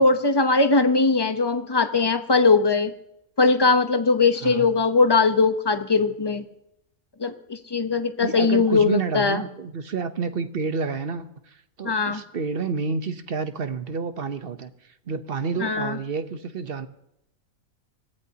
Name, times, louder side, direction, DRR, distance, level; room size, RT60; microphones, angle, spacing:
voice 1, 0.0-2.9 3.4-6.4 7.2-9.4 11.8-12.2 15.6-16.0, left 4 dB, 20° left, 8 dB, 0.8 m, -20 dB
voice 2, 4.4-4.8 8.2-16.9, right 5 dB, 45° right, 9 dB, 1.1 m, -29 dB
24.5 x 16.5 x 2.9 m, 0.81 s
omnidirectional pair, 1.5 m